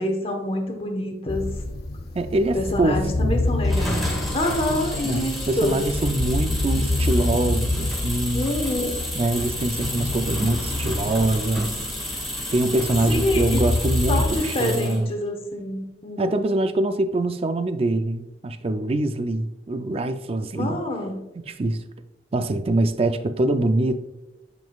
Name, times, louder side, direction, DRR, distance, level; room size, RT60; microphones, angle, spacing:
voice 1, 0.0-1.6 2.5-5.8 8.3-9.1 13.0-13.6 14.1-16.3 20.5-21.2, left 1 dB, 35° left, 1.1 m, -27 dB
sound 1, 1.3-14.3, left 2 dB, 65° left, 0.6 m, -27 dB
voice 2, 2.1-3.5 5.0-8.5 9.1-11.7 12.5-15.1 16.2-20.8 21.4-21.8 22.3-24.0, right 2 dB, 35° right, 0.4 m, -24 dB
sound 2, 3.6-15.0, equal, ahead, 1.8 m, -32 dB
9.2 x 5.3 x 2.4 m
head